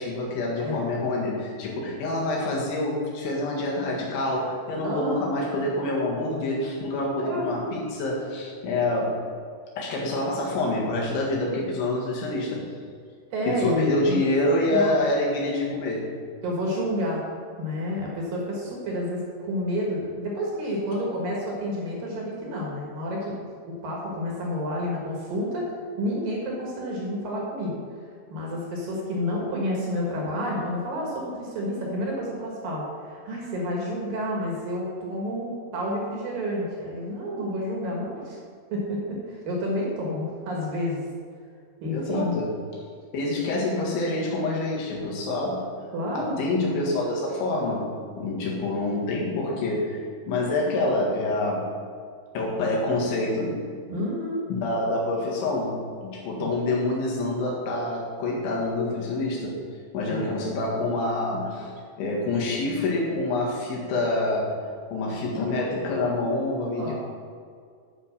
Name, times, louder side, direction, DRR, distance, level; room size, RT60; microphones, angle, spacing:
voice 1, 0.0-9.2 9.8-12.7 13.5-16.1 41.9-42.6 43.1-45.7 46.1-51.7 52.3-53.6 54.5-59.6 59.9-66.9, left 2 dB, 80° left, -3 dB, 4.2 m, -27 dB
voice 2, 4.8-5.2 7.2-7.5 13.3-14.2 14.7-14.9 16.4-17.2 17.6-23.4 23.7-25.7 26.0-27.7 28.3-38.4 38.7-41.1 41.8-42.3 45.9-46.4 53.9-54.5 60.1-60.4 66.8-66.9, equal, 60° right, -3 dB, 2.9 m, -29 dB
9.5 x 5.8 x 6.7 m, 2.1 s
omnidirectional pair, 5.2 m